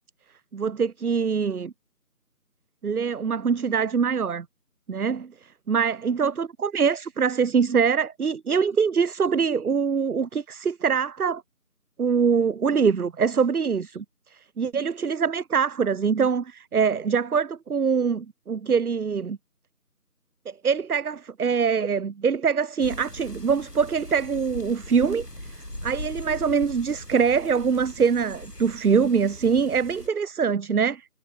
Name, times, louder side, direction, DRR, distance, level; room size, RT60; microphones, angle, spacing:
voice 1, 0.5-1.7 2.8-4.5 4.9-11.4 12.0-14.0 14.3-19.4 20.6-25.5 25.8-31.1, right 6 dB, 70° right, 0.6 m, -24 dB
sound 1, 22.8-30.1, left 1 dB, 85° left, 6.6 m, -40 dB
figure-of-eight pair, 175°, 47 cm